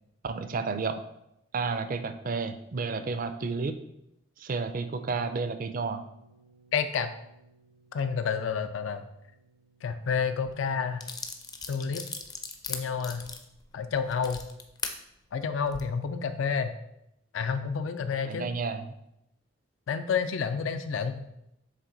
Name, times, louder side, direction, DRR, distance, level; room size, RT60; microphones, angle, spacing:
voice 1, 0.2-1.0 1.5-3.8 4.4-6.0 18.2-18.9, right 4 dB, 45° right, 9 dB, 0.4 m, -31 dB
sound 1, 5.1-16.8, right 2 dB, 85° right, 1.0 m, -60 dB
voice 2, 6.7-7.1 7.9-9.1 9.8-11.0 11.7-12.1 12.7-13.3 13.7-14.4 15.3-16.7 17.3-18.5 19.9-21.3, left 6 dB, 80° left, 10 dB, 0.4 m, -29 dB
sound 2, 10.5-10.6 11.0-15.0 15.5-15.8, left 5 dB, 20° left, 0.4 m, -38 dB
7.4 x 3.4 x 3.9 m, 0.83 s
head